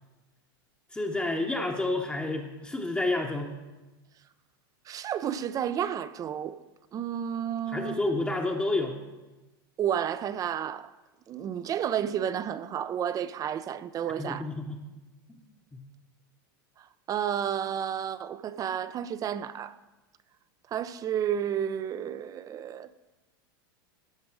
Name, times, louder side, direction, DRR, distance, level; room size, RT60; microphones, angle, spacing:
voice 1, 0.9-3.5 7.7-9.0 14.2-14.8 15.3-15.4 15.7-15.8, left 2 dB, 10° left, 0.9 m, -29 dB
voice 2, 4.9-6.6 6.9-8.0 9.8-10.9 11.3-14.5 16.8-19.7 20.7-22.9, right 9 dB, 30° right, 0.4 m, -31 dB
13.5 x 5.2 x 4.7 m
hypercardioid pair, 110°, 12 cm